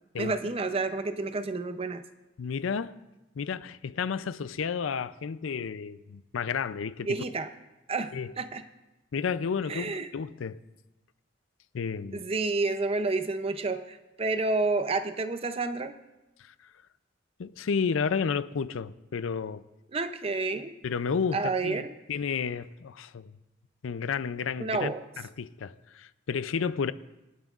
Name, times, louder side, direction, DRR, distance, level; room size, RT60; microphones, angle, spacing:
voice 1, 0.2-2.0 7.1-7.5 7.9-8.6 9.7-10.1 12.1-15.9 19.9-20.7 21.3-22.0 24.6-25.0, right 3 dB, 30° right, 0.5 m, -30 dB
voice 2, 2.4-3.0 3.4-7.2 8.1-8.3 9.1-10.6 11.7-12.2 16.4-16.5 17.4-19.6 20.8-23.3 23.8-26.9, left 6 dB, 85° left, 0.5 m, -32 dB
27.0 x 9.1 x 2.4 m
head